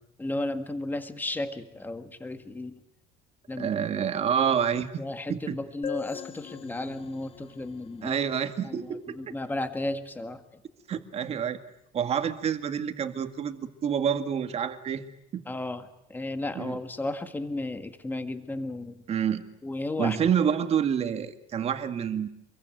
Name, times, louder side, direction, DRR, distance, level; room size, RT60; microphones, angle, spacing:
voice 1, 0.2-2.8 3.5-3.7 5.0-8.2 8.6-10.4 15.5-19.1 19.6-20.2, left 2 dB, 10° left, 9 dB, 1.8 m, -34 dB
voice 2, 3.6-5.0 5.3-5.6 8.0-9.2 10.9-11.6 11.9-15.0 15.3-15.4 16.6-16.8 19.1-19.5 20.0-22.3, right 8 dB, 35° right, 9 dB, 2.0 m, -28 dB
sound 1, 5.8-9.4, left 9 dB, 30° left, 1.2 m, -42 dB
27.5 x 22.5 x 9.2 m, 0.80 s
cardioid pair, 165°, 19 cm